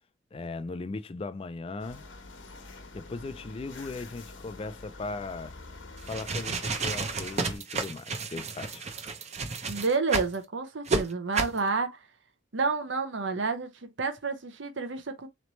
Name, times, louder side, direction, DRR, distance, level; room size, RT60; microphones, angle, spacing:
voice 1, 0.3-2.0 2.9-5.5 6.1-8.8, left 3 dB, 30° left, 0.4 m, -38 dB
sound 1, 1.8-7.6, left 3 dB, 85° left, 1.1 m, -46 dB
sound 2, 6.0-10.3 10.9-11.0 11.3-11.6, right 4 dB, 35° right, 0.7 m, -31 dB
voice 2, 9.7-12.0 12.5-15.3, right 4 dB, 75° right, 0.8 m, -30 dB
4.0 x 3.2 x 3.1 m
head